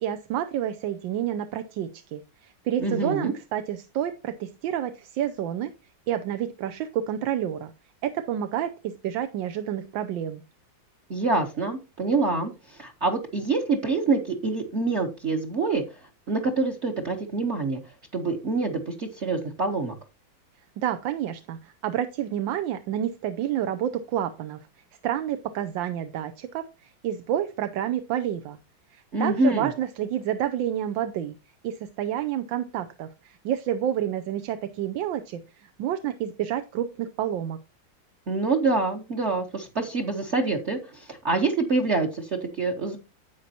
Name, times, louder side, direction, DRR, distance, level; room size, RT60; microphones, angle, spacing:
voice 1, 0.0-5.7 6.1-7.7 8.0-10.4 20.8-24.6 25.0-28.6 28.9-31.3 31.6-37.6, right 10 dB, 80° right, 9 dB, 1.4 m, -29 dB
voice 2, 2.8-3.3 11.1-15.8 16.3-17.8 18.1-19.9 29.1-29.7 38.3-43.0, right 3 dB, 40° right, 1 dB, 1.2 m, -26 dB
10.5 x 8.0 x 2.8 m, 0.28 s
omnidirectional pair, 2.1 m